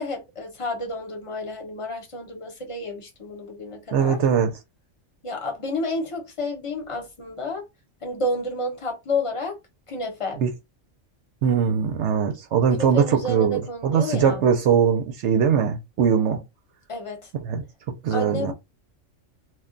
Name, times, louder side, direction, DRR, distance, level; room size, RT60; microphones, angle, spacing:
voice 1, 0.0-4.2 5.2-7.7 8.0-9.6 9.9-10.4 12.7-14.5 16.9-17.3 18.1-18.5, left 2 dB, 30° left, 0.8 m, -30 dB
voice 2, 3.9-4.5 10.4-10.5 11.4-16.4 17.4-17.6 18.0-18.5, right 7 dB, 70° right, 0.8 m, -21 dB
2.3 x 2.2 x 3.7 m
omnidirectional pair, 1.3 m